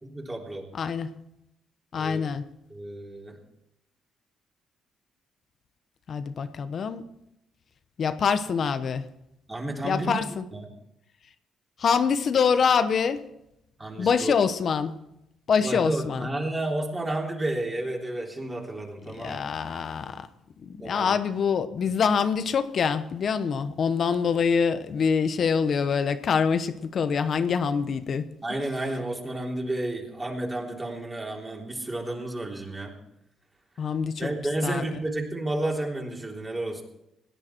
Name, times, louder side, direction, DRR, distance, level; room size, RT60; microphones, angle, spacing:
voice 1, 0.0-0.7 1.9-2.2 2.7-3.4 9.5-10.1 10.5-10.7 13.8-14.3 15.6-19.4 20.8-21.2 28.4-33.0 34.2-36.8, right 1 dB, 20° right, 0 dB, 3.5 m, -31 dB
voice 2, 0.7-1.1 1.9-2.4 6.1-7.0 8.0-9.0 9.8-10.4 11.8-13.2 14.0-14.9 15.5-16.3 19.2-20.3 20.6-28.3 33.8-34.3 34.6-34.8, left 6 dB, 55° left, 11 dB, 1.1 m, -25 dB
18.0 x 11.0 x 4.5 m, 0.83 s
cardioid pair, 90°, 0 cm